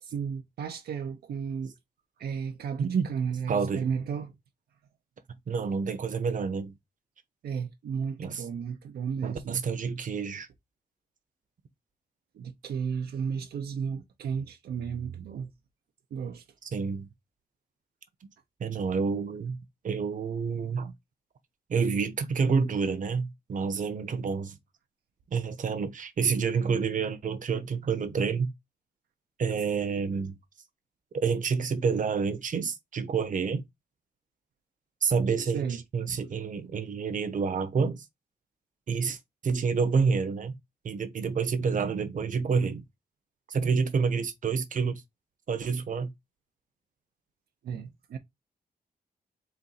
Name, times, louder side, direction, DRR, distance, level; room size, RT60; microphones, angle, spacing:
voice 1, 0.0-1.7 2.2-4.3 7.4-9.6 12.3-15.5 16.1-16.4 35.5-35.8 36.1-36.2 47.6-48.2, right 6 dB, 85° right, 0.8 m, -33 dB
voice 2, 3.5-3.9 5.5-6.7 8.2-8.4 9.2-10.5 16.6-17.1 18.6-19.6 19.8-20.9 21.7-24.6 25.3-28.5 29.4-30.4 31.1-33.6 35.0-35.6 35.9-38.0 38.9-39.2 39.4-40.5 40.8-42.8 43.5-45.0 45.5-46.1, right 5 dB, 55° right, 1.0 m, -28 dB
4.4 x 2.6 x 4.0 m
cardioid pair, 85°, 16 cm